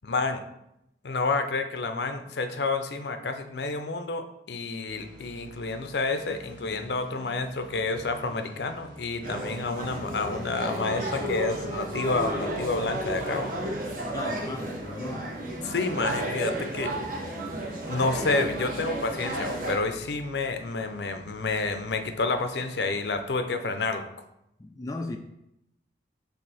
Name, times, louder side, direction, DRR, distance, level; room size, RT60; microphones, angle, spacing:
voice 1, 0.0-0.4 1.0-13.5 15.6-16.9 17.9-24.1, left 3 dB, 70° left, 0.6 m, -29 dB
sound 1, 4.9-23.3, right 1 dB, 90° right, 1.7 m, -49 dB
sound 2, 9.2-19.8, right 1 dB, 50° right, 1.1 m, -33 dB
voice 2, 14.1-15.3 24.6-25.2, left 2 dB, 20° left, 0.3 m, -36 dB
6.6 x 3.4 x 4.1 m
head